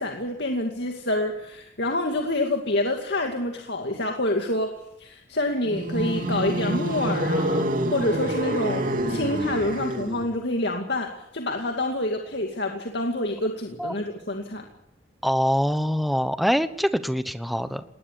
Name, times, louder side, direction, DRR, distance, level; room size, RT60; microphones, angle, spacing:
voice 1, 0.0-4.7 5.0-7.7 7.9-14.6, left 1 dB, 55° left, 3 dB, 2.4 m, -27 dB
sound 1, 5.6-10.3, right 1 dB, 45° right, 3.0 m, -27 dB
voice 2, 15.2-17.8, equal, ahead, 11 dB, 1.0 m, -24 dB
20.0 x 19.5 x 8.3 m, 0.84 s
head